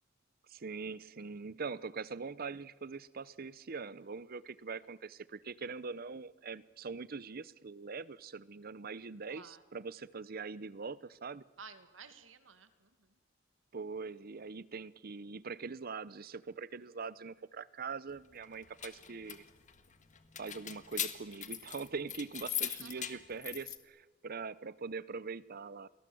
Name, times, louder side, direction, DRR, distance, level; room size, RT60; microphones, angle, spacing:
voice 1, 0.5-11.4 13.7-19.4 20.4-25.9, right 4 dB, 50° right, 18 dB, 0.7 m, -43 dB
voice 2, 9.3-9.6 11.6-13.1 22.6-23.2, right 5 dB, 90° right, 10 dB, 2.0 m, -54 dB
sound 1, 18.5-23.8, left 10 dB, 40° left, 1.6 m, -41 dB
29.5 x 22.0 x 7.8 m, 1.4 s
head